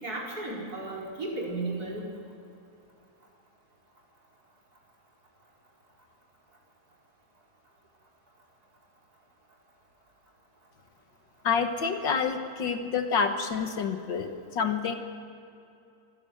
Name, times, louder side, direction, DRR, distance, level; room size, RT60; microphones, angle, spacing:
voice 1, 0.0-2.1, right 2 dB, 50° right, -3 dB, 5.2 m, -34 dB
voice 2, 11.4-14.9, left 6 dB, 70° left, 7 dB, 2.0 m, -28 dB
24.5 x 15.5 x 7.9 m, 2.6 s
omnidirectional pair, 2.1 m